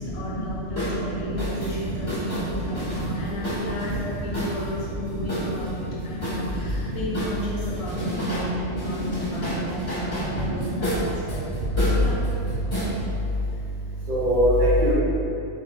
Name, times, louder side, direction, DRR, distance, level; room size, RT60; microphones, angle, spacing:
voice 1, 0.0-11.5 11.9-12.2, left 1 dB, 75° left, -6 dB, 1.1 m, -34 dB
sound 1, 0.8-1.0 1.4-4.7 5.3-6.8 7.1-8.5 8.7-12.9, equal, 30° left, 1.0 m, -31 dB
voice 2, 1.1-1.7 1.9-3.1 5.1-5.5 6.4-6.5 6.9-7.0 8.0-8.3 8.7-8.8 9.3-9.5 10.1-10.8 14.1-14.9, equal, 65° right, -9 dB, 0.4 m, -25 dB
2.5 x 2.4 x 3.0 m, 2.8 s
omnidirectional pair, 1.4 m